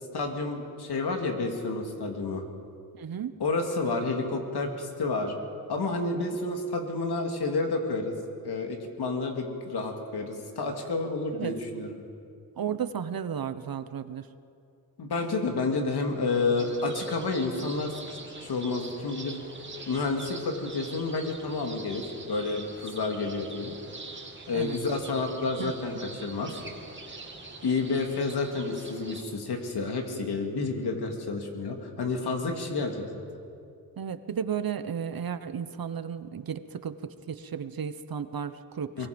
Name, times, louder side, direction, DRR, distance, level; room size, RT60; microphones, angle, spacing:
voice 1, 0.1-2.4 3.4-5.3 5.7-8.1 8.4-12.0 15.0-19.4 19.9-23.7 24.5-26.6 27.6-33.2 39.0-39.1, left 3 dB, 80° left, 3 dB, 2.8 m, -30 dB
voice 2, 3.0-3.3 6.1-6.4 11.3-11.6 12.6-14.3 24.5-24.8 25.6-25.7 34.0-39.1, right 7 dB, 65° right, 12 dB, 1.0 m, -34 dB
sound 1, 16.6-29.2, right 3 dB, 30° right, 2.6 m, -44 dB
23.0 x 22.0 x 5.3 m, 2.4 s
cardioid pair, 80°, 39 cm